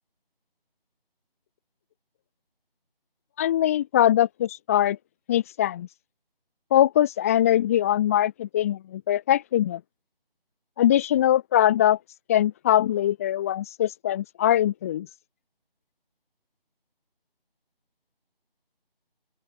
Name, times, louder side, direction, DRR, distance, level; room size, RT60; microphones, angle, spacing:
voice 1, 3.4-5.0 5.3-5.9 6.7-9.8 10.8-12.0 12.3-15.1, left 12 dB, 15° left, 3.9 m, -22 dB
open air
figure-of-eight pair, 170°, 30 cm